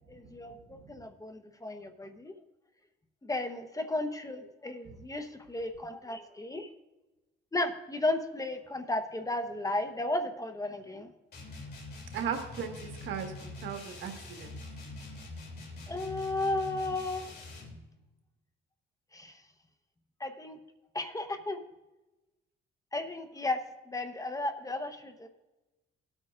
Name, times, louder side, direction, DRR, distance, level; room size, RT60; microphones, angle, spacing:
voice 1, 0.1-2.3 3.2-6.7 7.5-11.1 15.9-17.3 19.1-19.4 20.2-20.6 20.9-21.6 22.9-23.6 23.8-25.3, left 2 dB, 15° left, 7 dB, 1.0 m, -34 dB
sound 1, 11.3-17.8, left 2 dB, 55° left, 2.8 m, -44 dB
voice 2, 12.1-14.6, right 7 dB, 75° right, 4 dB, 1.7 m, -37 dB
18.5 x 8.9 x 2.5 m, 1.1 s
cardioid pair, 90°, 20 cm